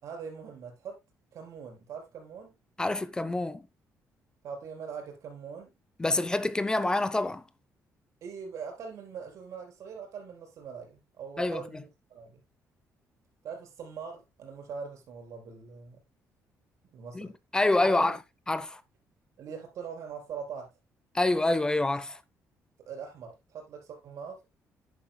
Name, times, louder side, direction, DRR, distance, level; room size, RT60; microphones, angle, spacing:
voice 1, 0.0-1.0 1.3-2.5 4.4-5.7 8.2-12.4 13.4-16.0 16.9-17.3 17.7-18.1 19.4-20.7 22.9-24.4, right 6 dB, 65° right, 4.1 m, -42 dB
voice 2, 2.8-3.7 6.0-7.4 11.4-11.8 17.1-18.2 18.5-18.8 21.1-22.2, left 2 dB, 15° left, 0.6 m, -27 dB
10.5 x 9.8 x 2.2 m
cardioid pair, 140°, 6 cm